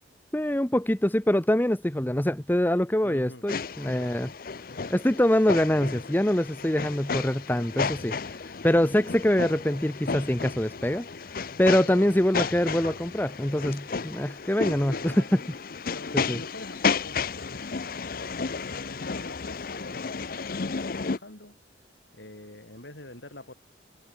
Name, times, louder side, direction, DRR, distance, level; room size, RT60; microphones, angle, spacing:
voice 1, 0.3-4.3 4.9-8.1 8.6-11.1 11.6-15.2 16.1-16.4, left 1 dB, 10° left, 0.9 m, -24 dB
voice 2, 3.0-3.4 8.1-8.4 11.8-12.1 14.8-15.3 15.9-21.6 22.1-23.5, left 1 dB, 80° left, 6.7 m, -45 dB
sound 1, 3.5-21.2, left 5 dB, 50° left, 0.7 m, -33 dB
head